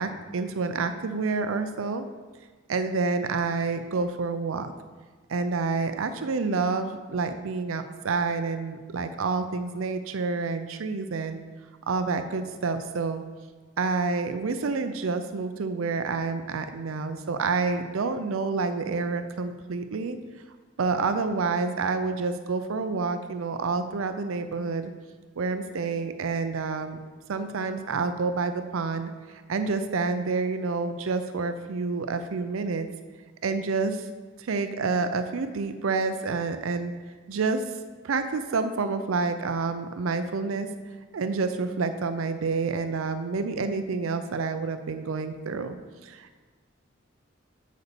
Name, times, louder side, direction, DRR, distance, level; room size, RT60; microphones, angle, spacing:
voice 1, 0.0-2.1 2.7-4.7 5.3-11.4 11.9-13.2 13.8-20.2 20.8-24.9 25.4-27.0 27.3-32.9 33.4-34.1 34.4-36.9 37.3-37.6 38.0-40.7 41.1-45.8 46.0-46.4, right 4 dB, 90° right, 9 dB, 0.5 m, -28 dB
8.1 x 4.2 x 6.8 m, 1.4 s
head